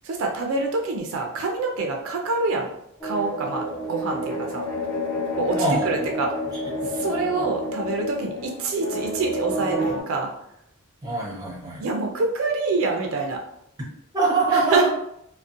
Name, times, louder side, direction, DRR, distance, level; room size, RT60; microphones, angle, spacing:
voice 1, 0.0-2.7 3.0-4.6 5.4-6.3 6.9-10.3 11.8-13.4 14.5-14.9, right 3 dB, 70° right, 1 dB, 0.4 m, -26 dB
sound 1, 3.0-10.0, equal, 25° left, 0.9 m, -29 dB
voice 2, 5.5-6.1 6.8-7.4 11.0-11.8 14.1-14.9, right 3 dB, 15° right, -4 dB, 0.7 m, -24 dB
2.4 x 2.0 x 2.5 m, 0.77 s
head